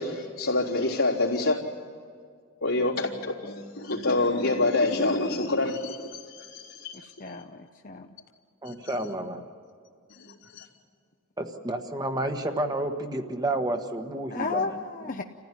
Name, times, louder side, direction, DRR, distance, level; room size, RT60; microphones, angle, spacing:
voice 1, 0.0-1.6 2.6-7.0 8.7-8.9 10.2-10.7, left 2 dB, 90° left, -3 dB, 3.6 m, -27 dB
voice 2, 7.0-8.1 14.3-15.2, left 4 dB, 40° left, 4 dB, 0.7 m, -33 dB
voice 3, 8.6-9.4 11.4-14.8, right 1 dB, 20° right, 5 dB, 1.3 m, -30 dB
28.5 x 15.5 x 9.8 m, 2.1 s
head